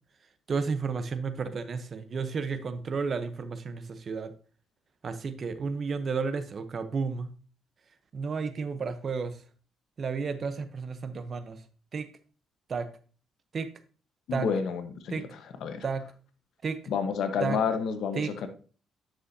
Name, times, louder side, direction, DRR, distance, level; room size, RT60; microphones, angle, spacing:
voice 1, 0.5-4.3 5.0-7.3 8.1-9.3 10.0-11.6 11.9-12.1 12.7-12.9 13.5-13.7 14.3-14.5 15.1-15.3 15.8-16.0 16.6-16.8 17.4-17.6 18.2-18.3, right 5 dB, 45° right, 11 dB, 0.9 m, -32 dB
voice 2, 14.3-15.8 16.9-18.5, left 6 dB, 75° left, 8 dB, 1.2 m, -30 dB
9.6 x 6.2 x 2.8 m, 0.38 s
cardioid pair, 90°, 0 cm